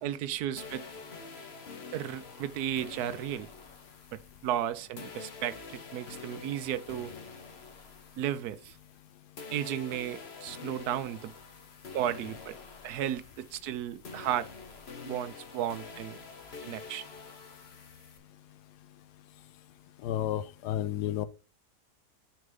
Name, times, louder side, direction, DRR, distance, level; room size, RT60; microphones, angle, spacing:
voice 1, 0.0-0.9 1.9-3.5 4.1-7.1 8.2-8.8 9.5-11.3 11.9-12.6 12.8-14.5 15.0-16.2 16.6-17.0, right 11 dB, 75° right, 1.2 m, -34 dB
sound 1, 0.6-9.1 9.4-18.2, left 4 dB, 40° left, 1.3 m, -47 dB
voice 2, 20.0-21.3, left 11 dB, 80° left, 1.2 m, -31 dB
6.5 x 4.6 x 5.1 m
omnidirectional pair, 1.7 m